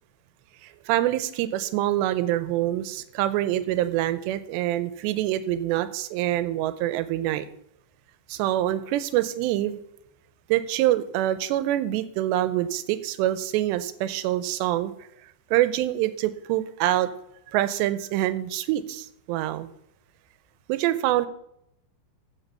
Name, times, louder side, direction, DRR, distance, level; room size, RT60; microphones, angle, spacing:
voice 1, 0.9-7.5 8.3-9.8 10.5-14.9 15.5-17.1 17.5-19.7 20.7-21.3, right 14 dB, 80° right, 12 dB, 2.7 m, -25 dB
15.0 x 5.8 x 5.6 m, 0.76 s
omnidirectional pair, 5.3 m